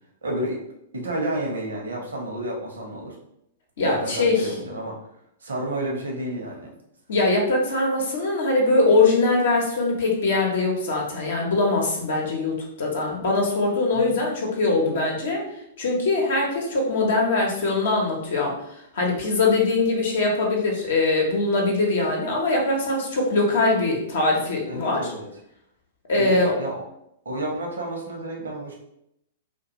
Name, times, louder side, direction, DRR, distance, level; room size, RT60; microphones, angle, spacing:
voice 1, 0.2-0.6 0.9-3.2 3.8-5.0 5.4-6.7 13.9-14.2 24.6-25.3 26.2-26.8 27.2-28.7, right 1 dB, 70° right, -1 dB, 0.7 m, -30 dB
voice 2, 3.8-4.5 7.1-15.4 15.8-18.5 18.9-25.1 26.1-26.5, left 3 dB, 60° left, -1 dB, 0.7 m, -22 dB
2.3 x 2.2 x 2.8 m, 0.78 s
figure-of-eight pair, 105°, 0 cm